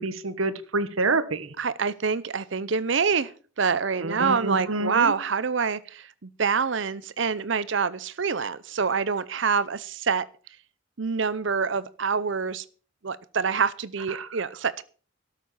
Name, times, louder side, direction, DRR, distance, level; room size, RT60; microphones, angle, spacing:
voice 1, 0.0-1.5 4.0-5.1 14.1-14.3, right 3 dB, 90° right, 1.4 m, -27 dB
voice 2, 1.6-3.3 3.6-10.3 11.0-12.6 13.0-14.8, right 5 dB, 65° right, 0.7 m, -26 dB
13.0 x 7.4 x 7.4 m
head